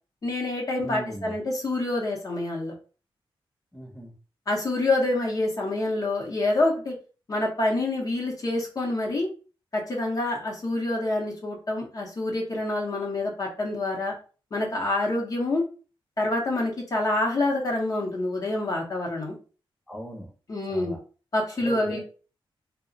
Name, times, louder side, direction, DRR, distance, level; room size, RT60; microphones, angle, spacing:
voice 1, 0.2-2.7 4.5-6.9 7.3-9.3 9.7-14.1 14.5-15.7 16.2-19.4 20.5-20.9 21.3-22.0, left 2 dB, 40° left, -1 dB, 0.7 m, -27 dB
voice 2, 0.8-1.4 3.7-4.1 19.9-20.3 20.7-21.0 21.5-22.0, equal, 5° left, -1 dB, 0.7 m, -38 dB
2.3 x 2.0 x 3.7 m, 0.37 s
wide cardioid pair, 145°, 9 cm